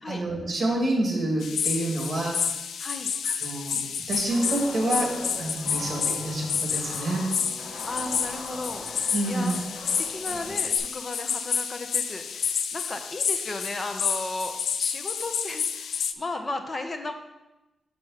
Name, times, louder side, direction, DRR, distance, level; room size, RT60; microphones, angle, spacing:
voice 1, 0.0-2.4 3.2-3.8 4.1-5.1 5.4-7.3 9.1-9.6, right 1 dB, 35° right, -1 dB, 2.1 m, -27 dB
sound 1, 1.4-16.1, left 7 dB, 80° left, 0.4 m, -30 dB
voice 2, 2.8-3.1 7.8-9.6 10.0-17.1, left 2 dB, 30° left, 6 dB, 0.7 m, -35 dB
Guitar, 4.3-10.8, left 1 dB, 50° left, 2.1 m, -40 dB
6.0 x 5.1 x 5.7 m, 1.0 s
wide cardioid pair, 160°, 0 cm